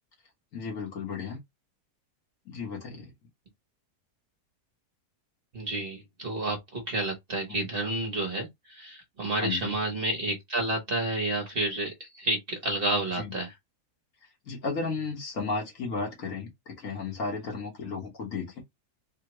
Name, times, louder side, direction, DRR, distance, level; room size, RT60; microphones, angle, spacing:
voice 1, 0.5-1.4 2.4-3.1 7.5-7.7 9.4-9.7 13.2-13.3 14.4-18.6, left 4 dB, 60° left, 1.6 m, -34 dB
voice 2, 5.5-13.5, right 1 dB, 40° right, 1.0 m, -30 dB
3.6 x 2.1 x 2.9 m
omnidirectional pair, 1.7 m